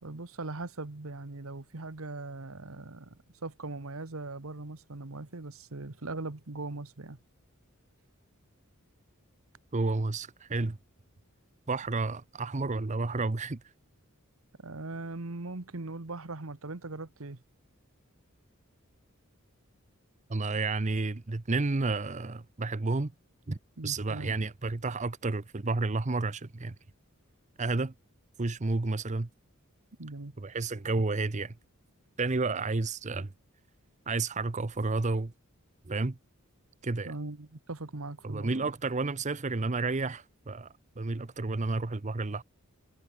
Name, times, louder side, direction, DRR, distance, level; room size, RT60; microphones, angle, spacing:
voice 1, 0.0-7.2 14.6-17.4 23.8-24.3 30.0-30.3 37.0-38.7, right 2 dB, 75° right, 1.4 m, -40 dB
voice 2, 9.7-10.8 11.7-13.6 20.3-23.1 23.5-26.7 27.6-27.9 28.4-29.3 30.4-31.5 32.2-33.3 34.1-35.3 35.9-36.2 36.8-37.1 38.2-40.7 41.0-42.4, right 3 dB, 35° right, 0.7 m, -31 dB
head